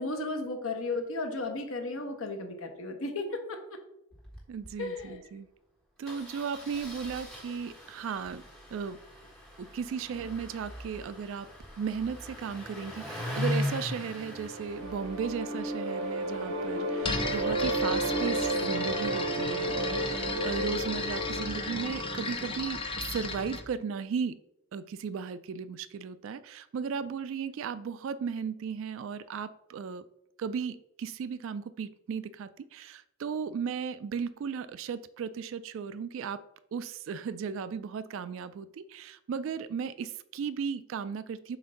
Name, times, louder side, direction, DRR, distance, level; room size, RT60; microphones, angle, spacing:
voice 1, 0.0-3.6 4.8-5.2, left 2 dB, 75° left, 5 dB, 1.0 m, -34 dB
Engine starting, 4.1-4.4 4.6-4.7 5.0-5.2 6.1-17.1, left 1 dB, ahead, 1.4 m, -39 dB
voice 2, 4.5-5.5 6.0-8.4 8.7-9.0 9.6-11.5 11.8-24.4 24.7-30.0 30.4-36.4 36.7-41.6, right 6 dB, 65° right, 13 dB, 0.3 m, -36 dB
sound 1, 13.9-23.0, right 1 dB, 80° right, 1.3 m, -33 dB
sound 2, 17.0-23.7, left 3 dB, 25° left, 0.6 m, -35 dB
7.2 x 2.6 x 5.4 m, 0.83 s
head